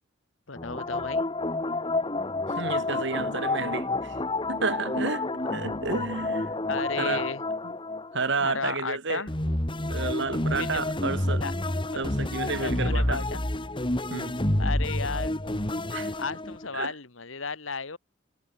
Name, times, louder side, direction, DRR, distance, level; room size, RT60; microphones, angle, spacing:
voice 1, 0.5-1.3 6.7-7.4 8.4-9.3 10.6-10.8 11.4-11.5 11.9-12.0 12.6-13.4 14.6-15.3 16.2-18.0, left 4 dB, 75° left, 1.9 m, -34 dB
sound 1, 0.6-8.8 9.3-16.7, left 2 dB, 25° left, 2.2 m, -29 dB
voice 2, 2.5-4.2 4.5-6.6 7.0-7.3 7.6-7.7 8.1-9.2 9.9-11.4 12.0-13.2 14.1-14.4 15.7-16.1 16.7-16.9, right 4 dB, 65° right, 2.2 m, -31 dB
head